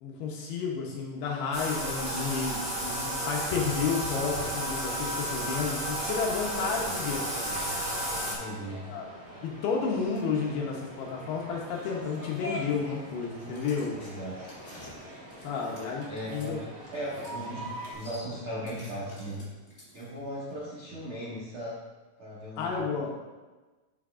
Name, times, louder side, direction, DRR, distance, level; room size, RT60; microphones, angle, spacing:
voice 1, 0.0-7.8 8.9-9.1 9.4-14.0 15.4-16.6 22.6-23.1, left 5 dB, 75° left, -1 dB, 2.8 m, -31 dB
Bathtub (filling or washing), 1.5-8.3, right 1 dB, 40° right, 0.7 m, -32 dB
sound 1, 4.4-17.9, equal, 55° right, 1.4 m, -44 dB
voice 2, 8.2-8.9 14.0-14.5 16.1-16.6 16.9-19.5 19.9-21.8 22.2-22.7, equal, 85° right, -8 dB, 1.1 m, -37 dB
sound 2, 13.3-16.5 16.9-17.4 17.6-20.3, left 1 dB, 25° left, 2.2 m, -51 dB
12.0 x 5.7 x 2.5 m, 1.2 s
omnidirectional pair, 5.0 m